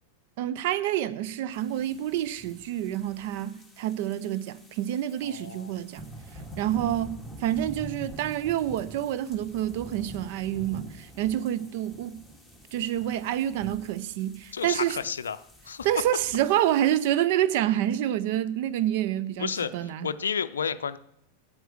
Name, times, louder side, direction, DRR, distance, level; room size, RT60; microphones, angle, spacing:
voice 1, 0.4-6.1 6.6-7.1 7.4-12.2 12.7-15.0 15.8-20.1, right 12 dB, 50° right, 0.5 m, -28 dB
sound 1, 1.5-17.1, equal, 5° right, 2.2 m, -46 dB
voice 2, 5.3-5.7 14.5-15.4 15.7-15.9 19.4-21.0, left 6 dB, 70° left, 0.4 m, -31 dB
9.1 x 8.7 x 6.4 m
figure-of-eight pair, 90°, 0 cm